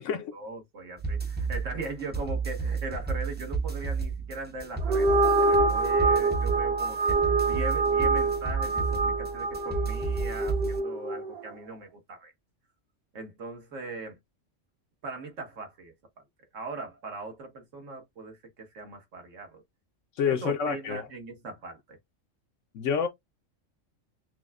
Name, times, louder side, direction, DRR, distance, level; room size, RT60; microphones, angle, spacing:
voice 1, 0.3-12.3 13.1-14.2 15.0-15.9 16.5-19.6 20.2-22.0, right 3 dB, 75° right, 1.6 m, -40 dB
sound 1, 1.0-10.8, right 5 dB, 15° right, 0.4 m, -32 dB
sound 2, 4.8-11.4, right 3 dB, 55° right, 0.9 m, -26 dB
voice 2, 20.2-21.1 22.7-23.1, left 7 dB, 75° left, 1.0 m, -28 dB
6.2 x 2.1 x 2.3 m
omnidirectional pair, 1.3 m